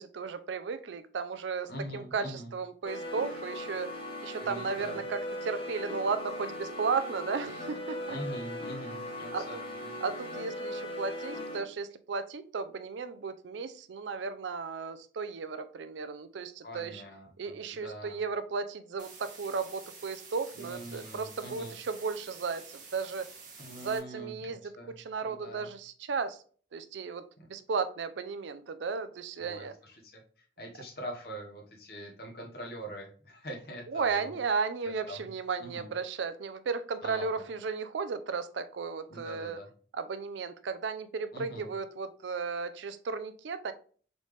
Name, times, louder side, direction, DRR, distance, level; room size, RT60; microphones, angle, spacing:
voice 1, 0.0-8.2 9.3-9.6 10.0-17.0 17.4-23.3 23.8-24.7 25.0-26.4 26.7-27.2 27.5-29.7 33.9-39.6 39.9-43.7, right 5 dB, 85° right, 12 dB, 0.4 m, -35 dB
voice 2, 1.7-2.5 4.4-5.0 8.1-9.9 16.6-18.2 20.5-21.8 23.6-24.9 25.2-25.7 27.4-27.5 29.4-34.3 35.1-35.3 35.6-35.9 37.0-37.5 39.1-39.7 41.3-41.7, equal, 55° left, 0 dB, 1.0 m, -43 dB
sound 1, 2.8-11.6, left 1 dB, 30° left, 0.8 m, -39 dB
sound 2, 19.0-24.0, right 5 dB, 45° right, 1.0 m, -49 dB
4.0 x 3.2 x 3.3 m, 0.43 s
head